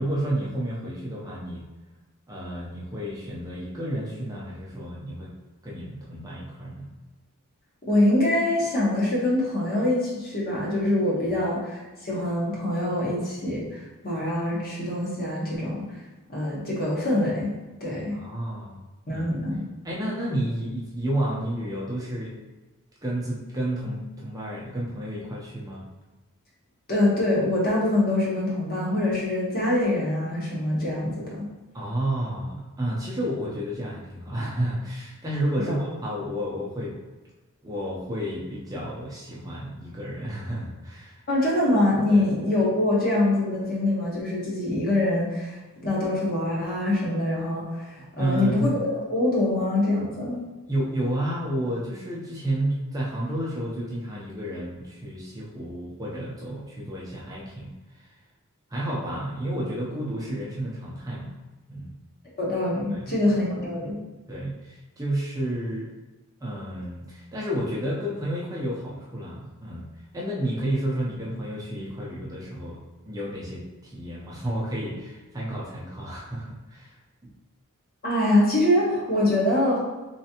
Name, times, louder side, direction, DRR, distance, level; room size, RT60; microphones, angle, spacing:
voice 1, 0.0-1.6 2.3-5.3 5.6-6.9 11.3-11.4 18.1-18.8 19.1-19.3 19.8-22.4 23.0-25.8 31.7-36.9 37.6-41.1 42.1-42.2 48.0-48.7 50.7-57.7 58.7-61.3 61.7-61.9 62.9-63.1 64.3-65.9 66.4-76.9 77.2-77.3, right 1 dB, 15° right, -5 dB, 0.6 m, -31 dB
voice 2, 7.8-15.9 16.3-17.5 17.8-18.2 19.1-19.6 26.9-31.5 35.6-35.8 41.3-45.6 45.8-50.4 62.4-64.0 78.0-79.8, left 1 dB, 45° left, -5 dB, 1.2 m, -24 dB
3.4 x 3.2 x 2.8 m, 1.2 s
head